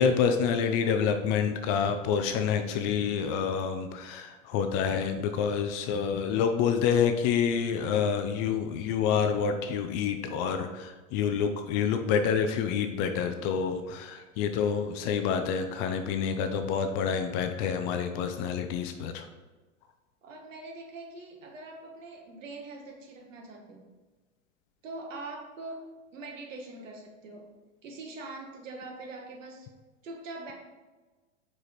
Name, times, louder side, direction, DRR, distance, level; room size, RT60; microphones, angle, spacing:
voice 1, 0.0-19.3, left 7 dB, 30° left, 7 dB, 0.4 m, -28 dB
voice 2, 20.2-23.9 24.8-27.5 27.8-29.7 30.0-30.5, right 2 dB, 75° right, 1 dB, 1.5 m, -43 dB
5.0 x 4.7 x 4.1 m, 1.2 s
hypercardioid pair, 115°, 39 cm